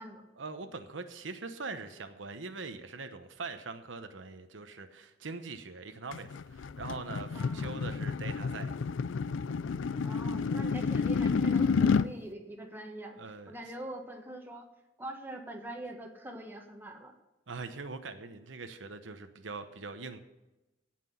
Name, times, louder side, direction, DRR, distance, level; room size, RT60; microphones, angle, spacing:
voice 1, 0.4-8.7 13.2-13.5 17.5-20.2, right 4 dB, 80° right, 8 dB, 1.0 m, -42 dB
sound 1, 6.1-12.1, left 5 dB, 85° left, 0.4 m, -30 dB
voice 2, 7.3-7.7 10.0-13.1 13.5-14.7 15.0-17.1, right 1 dB, 10° right, 2 dB, 1.5 m, -43 dB
17.0 x 6.0 x 5.8 m, 1.0 s
head